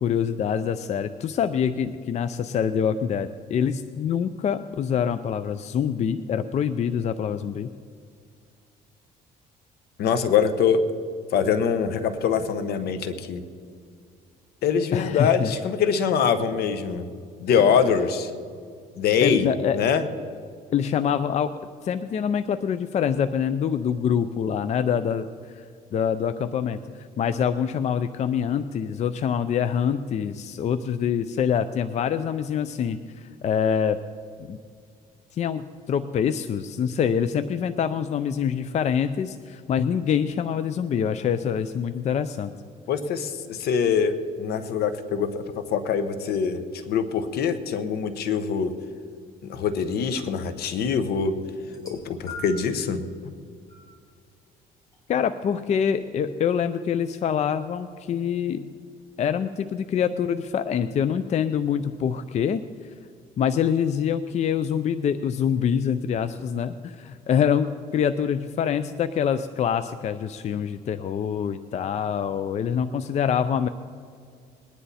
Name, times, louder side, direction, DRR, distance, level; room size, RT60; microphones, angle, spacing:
voice 1, 0.0-7.7 14.9-15.5 19.2-19.8 20.7-21.5 21.8-25.6 25.9-26.8 27.2-34.0 34.5-34.6 35.3-42.5 53.2-53.3 55.1-58.7 59.2-62.6 63.4-73.7, left 8 dB, 40° left, 11 dB, 0.5 m, -25 dB
voice 2, 10.0-10.8 11.3-13.4 14.6-17.1 17.4-18.3 19.0-19.5 19.7-20.0 42.9-45.4 45.7-48.7 49.4-51.3 51.8-53.0, left 6 dB, 70° left, 10 dB, 1.1 m, -24 dB
sound 1, 51.6-52.8 53.7-53.9 54.9-55.0, left 3 dB, 20° left, 4.3 m, -41 dB
21.0 x 10.5 x 4.2 m, 2.2 s
cardioid pair, 110°, 17 cm